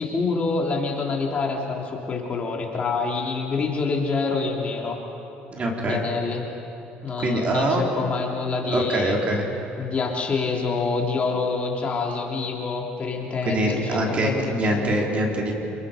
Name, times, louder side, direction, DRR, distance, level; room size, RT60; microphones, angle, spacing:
voice 1, 0.0-5.0 5.8-6.5 7.0-9.2 9.8-15.0, left 4 dB, 35° left, 0 dB, 3.4 m, -26 dB
voice 2, 5.5-6.0 7.2-7.8 8.7-9.5 13.4-15.5, right 1 dB, 35° right, 0 dB, 3.9 m, -24 dB
27.5 x 20.5 x 5.3 m, 2.9 s
supercardioid pair, 100°, 4 cm